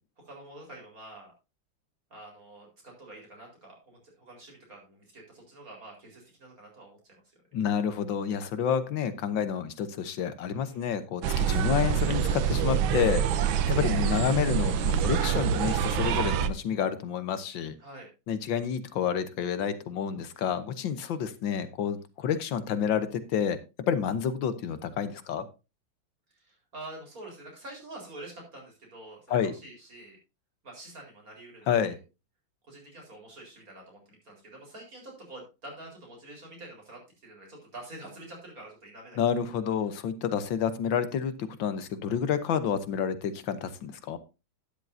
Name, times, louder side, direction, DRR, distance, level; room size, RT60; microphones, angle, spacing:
voice 1, 0.2-1.3 2.1-7.2 10.5-10.9 17.8-18.1 26.3-30.2 30.6-32.0 32.7-39.2, right 1 dB, 45° right, 0 dB, 4.8 m, -47 dB
voice 2, 7.5-13.3 13.7-17.8 18.3-25.4 29.3-29.5 31.7-32.0 39.2-44.2, left 8 dB, 80° left, 12 dB, 1.7 m, -29 dB
sound 1, 11.2-16.5, right 8 dB, 90° right, 1.6 m, -26 dB
12.0 x 10.5 x 2.7 m, 0.27 s
omnidirectional pair, 2.1 m